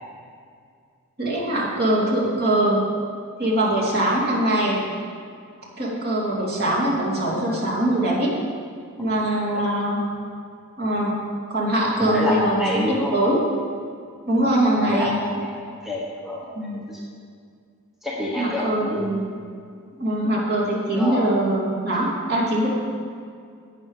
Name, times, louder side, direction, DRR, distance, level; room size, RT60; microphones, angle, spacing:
voice 1, 1.2-2.8 3.4-4.9 5.8-8.3 9.0-10.0 10.8-11.2 11.5-13.4 14.3-15.1 16.5-16.8 18.4-19.4 20.0-22.7, right 1 dB, 45° right, -5 dB, 2.5 m, -22 dB
voice 2, 12.0-13.1 14.8-15.5 15.8-17.0 18.0-19.1 20.2-20.4 21.0-21.4, left 1 dB, ahead, -5 dB, 1.2 m, -28 dB
11.5 x 8.6 x 4.8 m, 2.2 s
head